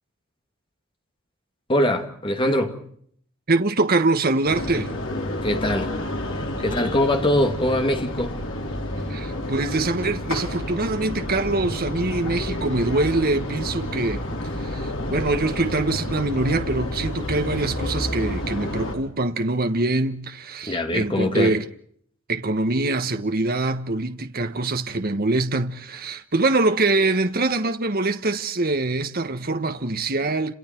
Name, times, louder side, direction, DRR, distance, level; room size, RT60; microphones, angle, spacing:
voice 1, 1.7-2.8 5.4-5.9 6.6-8.4 20.6-21.5, left 1 dB, 25° left, 2.5 m, -22 dB
voice 2, 3.5-4.9 9.1-14.2 14.6-21.6 22.3-30.5, right 2 dB, 45° right, 1.2 m, -24 dB
sound 1, 4.4-19.0, left 1 dB, 65° left, 5.0 m, -30 dB
30.0 x 28.0 x 4.5 m
head